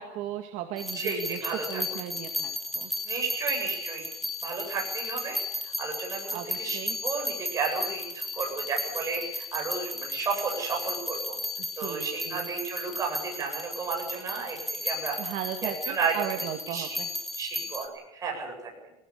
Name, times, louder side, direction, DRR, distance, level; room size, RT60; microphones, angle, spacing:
voice 1, 0.0-2.9 6.3-7.0 11.6-12.5 15.2-17.1, right 11 dB, 55° right, 5 dB, 2.0 m, -37 dB
sound 1, 0.8-17.9, left 1 dB, ahead, 2.5 m, -35 dB
voice 2, 0.9-1.8 3.1-4.1 4.4-5.4 5.8-11.4 11.8-15.2 15.6-16.2 16.7-16.9 17.3-18.5, right 4 dB, 20° right, 0 dB, 7.9 m, -32 dB
19.0 x 19.0 x 8.7 m, 0.88 s
cardioid pair, 165°, 15 cm